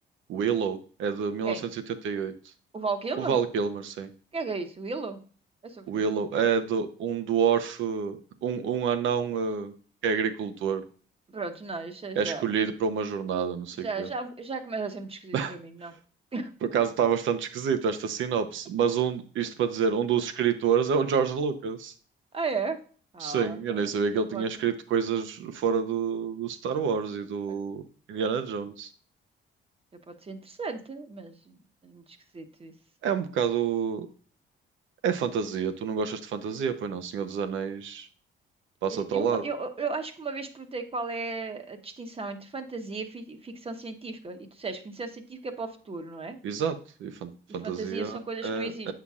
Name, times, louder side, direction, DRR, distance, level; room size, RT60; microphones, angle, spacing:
voice 1, 0.3-2.3 3.2-4.1 5.9-9.7 10.0-10.8 12.2-14.1 15.3-15.5 16.7-21.9 23.2-27.8 28.1-28.9 33.0-34.1 35.0-38.1 38.8-39.4 46.4-48.9, right 7 dB, 75° right, 9 dB, 0.8 m, -28 dB
voice 2, 2.7-3.4 4.3-5.2 5.6-6.1 11.3-12.4 13.8-15.9 16.3-16.5 22.3-22.8 23.1-24.7 27.5-27.6 30.1-31.6 31.8-32.7 38.9-46.4 47.5-48.9, right 4 dB, 30° right, 6 dB, 1.0 m, -35 dB
8.2 x 5.8 x 2.4 m, 0.41 s
cardioid pair, 90°, 20 cm